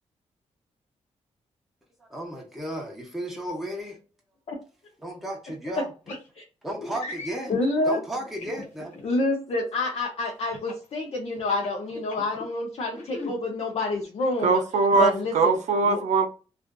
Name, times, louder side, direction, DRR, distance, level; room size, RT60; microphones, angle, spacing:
voice 1, 2.0-4.0 5.0-5.9 6.6-7.5 7.9-9.0, right 1 dB, ahead, 0.7 m, -34 dB
sound 1, 6.1-6.3 6.9-7.6 8.4-9.0 10.5-10.8 11.3-12.4 12.9-13.3, left 3 dB, 80° left, 1.1 m, -37 dB
voice 2, 7.5-8.0 9.0-13.0 13.3-14.6 15.0-15.5 15.9-16.0, left 2 dB, 60° left, 0.6 m, -27 dB
voice 3, 14.4-16.3, right 4 dB, 85° right, 0.5 m, -21 dB
2.4 x 2.4 x 2.2 m
cardioid pair, 110°, 12 cm